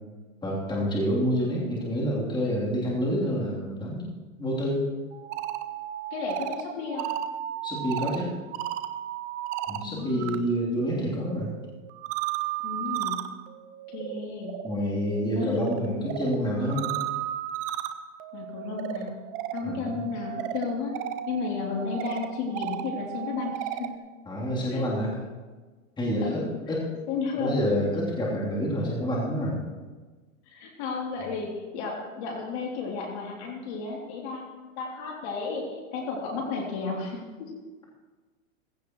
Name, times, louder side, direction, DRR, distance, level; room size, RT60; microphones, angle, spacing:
voice 1, 0.4-4.1 4.4-4.8 7.6-8.3 9.7-11.5 14.6-16.9 19.6-20.1 24.3-25.1 26.0-26.9 27.4-29.6, equal, 10° left, -6 dB, 3.4 m, -28 dB
sound 1, 5.1-10.4 10.7-24.0, right 12 dB, 20° right, 0.4 m, -35 dB
voice 2, 6.1-7.1 9.8-10.4 12.6-13.2 13.9-14.6 15.3-16.0 18.3-19.2 19.5-23.9 24.7-24.8 26.2-26.5 27.1-27.6 30.5-37.5, left 4 dB, 55° left, -1 dB, 3.3 m, -33 dB
16.5 x 16.0 x 3.2 m, 1.4 s
supercardioid pair, 145°, 40 cm